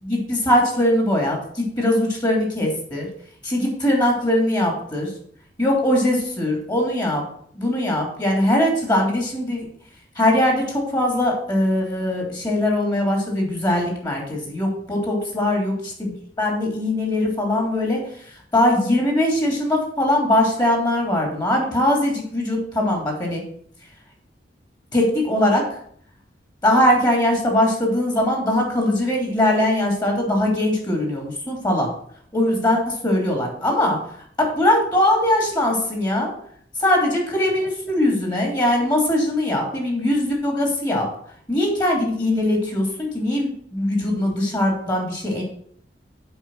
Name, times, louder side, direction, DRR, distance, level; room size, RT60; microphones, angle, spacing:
voice 1, 0.0-3.1 3.4-5.1 5.6-7.2 7.5-9.7 10.1-23.4 24.9-25.8 26.6-31.9 32.3-36.3 36.8-41.1 41.5-45.4, left 1 dB, 25° left, 0 dB, 2.8 m, -21 dB
8.1 x 5.1 x 6.3 m, 0.62 s
head